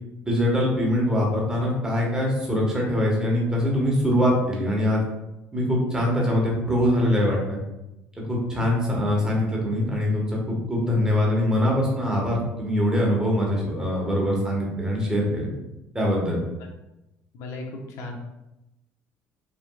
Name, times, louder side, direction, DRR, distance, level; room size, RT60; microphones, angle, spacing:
voice 1, 0.2-5.0 5.5-7.6 8.2-15.5 15.9-16.4, left 1 dB, 15° right, -2 dB, 1.4 m, -23 dB
voice 2, 17.3-18.1, left 2 dB, 75° left, 1 dB, 1.1 m, -36 dB
5.9 x 3.5 x 2.4 m, 0.94 s
cardioid pair, 135°, 5 cm